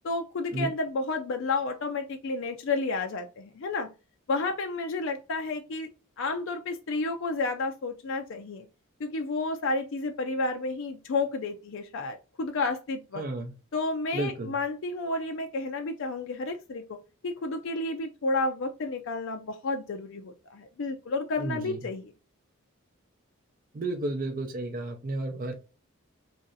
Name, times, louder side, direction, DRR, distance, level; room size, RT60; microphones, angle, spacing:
voice 1, 0.0-3.9 4.3-5.9 6.2-8.7 9.0-13.2 13.7-16.8 17.2-22.1, left 3 dB, 65° left, 5 dB, 0.4 m, -31 dB
voice 2, 13.2-13.5 14.1-14.5 21.4-21.8 23.7-25.5, right 2 dB, 40° right, 4 dB, 0.5 m, -32 dB
3.1 x 2.6 x 3.8 m, 0.31 s
head